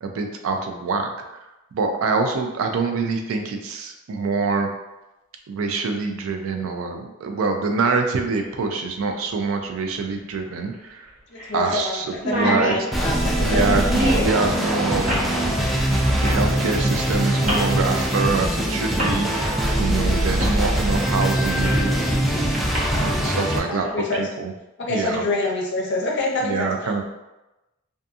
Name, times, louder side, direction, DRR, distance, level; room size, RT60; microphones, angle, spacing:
voice 1, 0.0-1.1 1.7-4.7 5.5-11.1 11.5-12.8 13.4-15.1 16.1-21.7 22.9-23.9 24.1-24.5 24.9-25.2 26.4-27.0, right 4 dB, 75° right, 4 dB, 0.4 m, -25 dB
sound 1, 8.4-8.5 10.3-10.4 10.7-10.8 11.4-11.6 11.9-12.0 12.1-14.3 15.1-15.3 16.2-16.4 17.4-17.7 18.5-18.6 19.0-19.1 20.4-20.6 21.0-21.9 22.5-22.8, equal, 35° right, 0.7 m, -26 dB
voice 2, 11.3-13.7 23.4-24.2 24.8-26.7, left 2 dB, 55° left, -2 dB, 0.6 m, -26 dB
sound 2, 12.9-23.6, right 1 dB, ahead, 0.3 m, -22 dB
2.6 x 2.5 x 2.3 m, 1.0 s
head